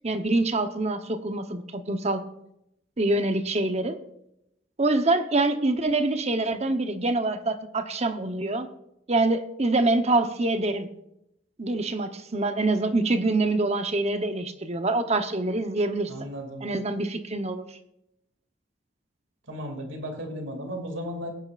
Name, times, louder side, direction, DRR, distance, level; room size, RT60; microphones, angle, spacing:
voice 1, 0.0-2.2 3.0-4.0 4.8-8.7 9.1-10.9 11.6-16.1 16.6-17.7, right 2 dB, 35° right, 8 dB, 1.0 m, -25 dB
voice 2, 16.1-16.7 19.5-21.3, equal, 75° right, 3 dB, 2.7 m, -35 dB
20.5 x 10.5 x 2.6 m, 0.81 s
head